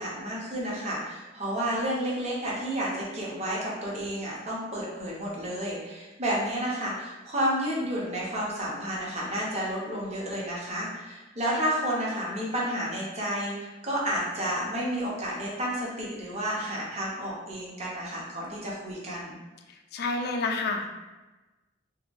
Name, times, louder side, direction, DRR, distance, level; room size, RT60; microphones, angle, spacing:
voice 1, 0.0-19.4, equal, 35° right, -5 dB, 0.7 m, -31 dB
voice 2, 19.9-20.9, left 3 dB, 55° left, 4 dB, 0.3 m, -28 dB
2.7 x 2.2 x 2.5 m, 1.1 s
head